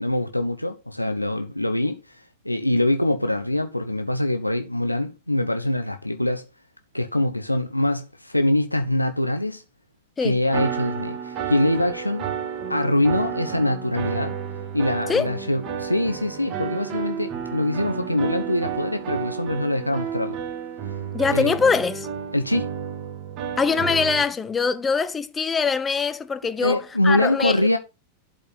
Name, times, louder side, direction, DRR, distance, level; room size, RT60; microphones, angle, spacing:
voice 1, 0.0-6.4 6.9-9.6 10.2-12.3 12.7-14.4 14.7-20.4 21.3-21.6 22.3-22.7 26.6-27.8, left 1 dB, 85° left, 1.0 m, -24 dB
sound 1, 10.5-24.2, right 7 dB, 35° right, 2.1 m, -31 dB
voice 2, 21.1-22.1 23.6-27.6, left 5 dB, 15° left, 1.0 m, -23 dB
11.5 x 5.5 x 5.7 m
figure-of-eight pair, 90°, 0 cm